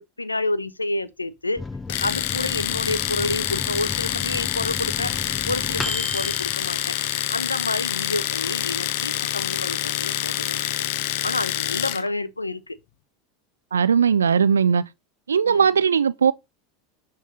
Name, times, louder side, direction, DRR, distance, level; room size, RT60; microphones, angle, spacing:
voice 1, 0.0-1.7 2.0-5.1 5.5-7.0 7.3-10.7 11.2-12.8 15.4-15.8, left 2 dB, 90° left, 0.8 m, -29 dB
Microwave oven, 1.6-7.6 8.0-8.1 8.4-9.0, left 3 dB, 15° left, 1.4 m, -34 dB
Domestic sounds home sounds, 1.9-12.1, left 13 dB, 55° left, 0.9 m, -27 dB
voice 2, 13.7-14.8 15.3-16.3, right 6 dB, 75° right, 0.7 m, -18 dB
11.0 x 4.0 x 6.6 m
figure-of-eight pair, 80°, 0 cm